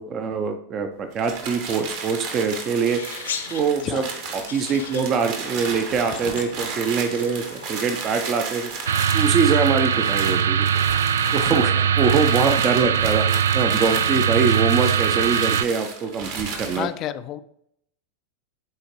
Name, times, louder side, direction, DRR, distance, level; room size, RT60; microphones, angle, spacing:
voice 1, 0.0-4.0 4.3-8.7 9.1-10.7 11.3-16.9, right 5 dB, 30° right, 7 dB, 0.6 m, -24 dB
sound 1, 1.1-16.9, right 5 dB, 50° right, 1.5 m, -34 dB
sound 2, 2.2-8.4, left 6 dB, 65° left, 0.9 m, -39 dB
sound 3, 8.9-15.6, right 8 dB, 65° right, 0.3 m, -21 dB
voice 2, 11.4-12.0 16.7-17.4, left 11 dB, 35° left, 13 dB, 0.4 m, -31 dB
12.0 x 4.3 x 3.1 m, 0.73 s
figure-of-eight pair, 90°, 0 cm